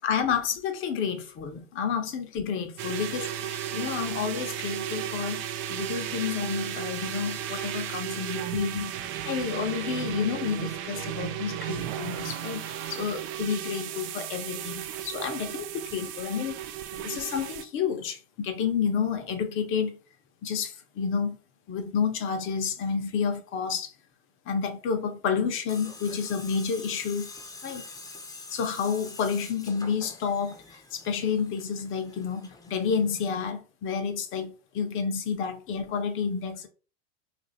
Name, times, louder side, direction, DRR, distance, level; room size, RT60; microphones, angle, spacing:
voice 1, 0.0-8.9 9.2-16.5 16.9-20.0 20.4-21.4 21.7-23.9 24.5-27.3 27.6-27.8 28.5-36.7, left 6 dB, 40° left, 0.9 m, -30 dB
sound 1, 2.8-17.6, right 10 dB, 40° right, 0.5 m, -34 dB
Tools, 25.7-33.5, left 3 dB, 10° left, 0.8 m, -45 dB
2.7 x 2.6 x 4.0 m
hypercardioid pair, 90°, 33 cm